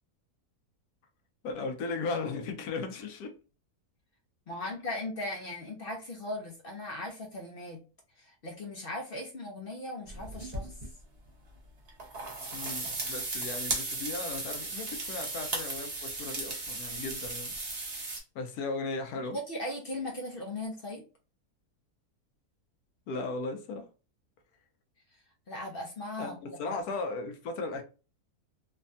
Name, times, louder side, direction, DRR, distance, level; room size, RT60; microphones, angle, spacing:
voice 1, 1.4-3.4 12.5-17.5 18.3-19.4 23.1-23.9 26.2-27.8, left 3 dB, 80° left, 1.2 m, -36 dB
voice 2, 4.5-7.8 8.2-10.7 19.3-21.0 25.5-26.8, left 1 dB, 55° left, 0.6 m, -38 dB
sound 1, 10.1-10.9 11.9-18.2, right 2 dB, 40° right, 0.6 m, -36 dB
3.2 x 2.2 x 2.6 m
omnidirectional pair, 1.6 m